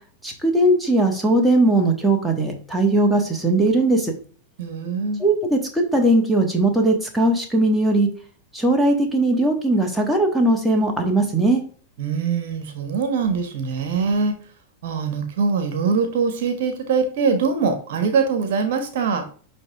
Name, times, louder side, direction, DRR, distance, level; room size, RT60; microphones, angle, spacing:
voice 1, 0.2-4.1 5.2-8.1 8.5-11.6, right 1 dB, ahead, 0 dB, 1.7 m, -19 dB
voice 2, 4.6-5.2 12.0-14.4 14.8-19.2, right 5 dB, 55° right, 7 dB, 1.3 m, -23 dB
10.5 x 3.5 x 3.6 m, 0.42 s
figure-of-eight pair, 90°, 0 cm